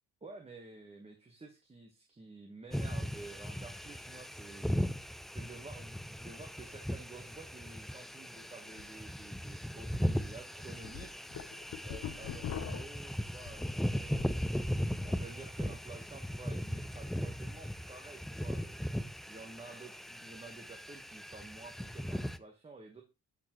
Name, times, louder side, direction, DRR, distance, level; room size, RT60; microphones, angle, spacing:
voice 1, 0.2-4.8 5.3-14.4 15.0-23.0, right 3 dB, 20° right, 2 dB, 1.1 m, -51 dB
sound 1, 2.7-22.4, equal, ahead, 0.4 m, -38 dB
sound 2, 8.7-8.8 9.2-9.3 9.9-10.1 10.6-14.4 14.7-15.2, left 8 dB, 60° left, 0.8 m, -43 dB
9.6 x 4.5 x 3.0 m, 0.27 s
cardioid pair, 90°, 30 cm